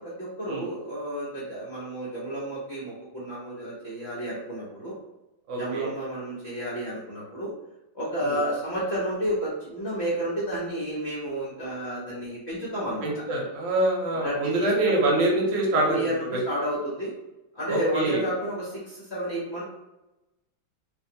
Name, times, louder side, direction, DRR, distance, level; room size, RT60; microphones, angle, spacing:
voice 1, 0.0-4.9 5.6-7.5 7.9-13.1 14.2-14.9 15.7-17.1 17.5-19.6, right 1 dB, 50° left, -8 dB, 0.9 m, -31 dB
voice 2, 5.5-5.9 8.2-8.4 13.0-15.8 17.7-18.2, right 2 dB, 70° right, -1 dB, 1.3 m, -25 dB
3.2 x 2.5 x 2.7 m, 0.98 s
omnidirectional pair, 2.2 m